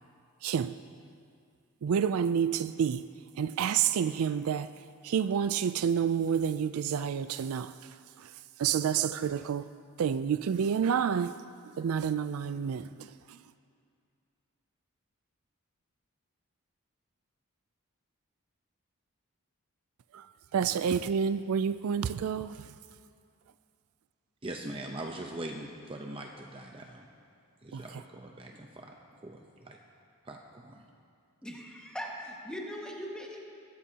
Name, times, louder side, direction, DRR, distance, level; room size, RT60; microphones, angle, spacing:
voice 1, 0.4-0.8 1.8-3.1 3.4-4.7 5.0-7.7 8.2-8.3 8.6-9.7 10.0-11.4 11.8-13.4 20.1-20.3 20.5-22.7 27.7-27.8, right 7 dB, 75° right, 0.4 m, -29 dB
voice 2, 24.4-27.1 27.6-29.0 29.2-29.8 30.2-30.8, right 1 dB, 25° right, 0.7 m, -42 dB
voice 3, 31.4-33.4, equal, 5° left, 1.7 m, -40 dB
23.0 x 13.5 x 2.9 m
head